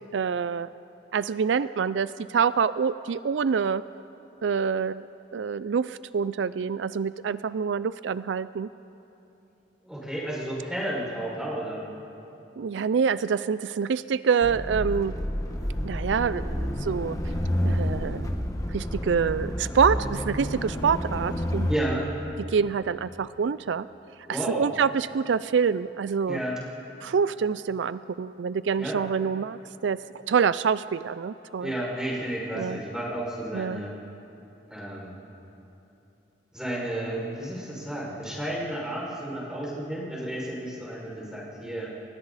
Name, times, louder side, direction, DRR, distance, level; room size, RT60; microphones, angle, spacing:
voice 1, 0.1-0.7 1.1-3.8 4.4-5.0 5.3-8.7 12.6-15.1 15.8-17.2 17.6-18.3 18.7-21.7 22.5-23.9 24.3-26.4 27.0-30.0 30.3-31.7 32.5-32.8 33.5-33.8, right 6 dB, 80° right, 16 dB, 0.4 m, -26 dB
voice 2, 9.8-11.8 21.7-22.1 24.3-24.7 26.3-26.6 28.8-29.0 31.6-33.9 34.7-35.1 36.5-41.9, right 1 dB, 5° right, -6 dB, 5.7 m, -32 dB
sound 1, 14.4-21.8, equal, 20° left, 1.3 m, -29 dB
30.0 x 22.0 x 4.1 m, 3.0 s
head